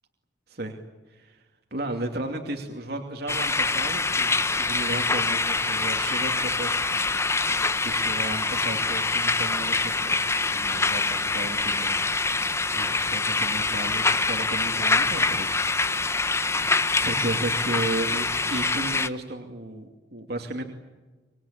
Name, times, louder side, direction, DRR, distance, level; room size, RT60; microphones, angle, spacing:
voice 1, 0.5-0.8 1.1-1.4 1.7-7.1 7.4-15.8 16.3-20.6, right 2 dB, 60° right, 3 dB, 2.6 m, -34 dB
sound 1, 3.3-19.1, left 3 dB, 15° left, 0.8 m, -25 dB
25.5 x 21.5 x 8.8 m, 1.2 s
head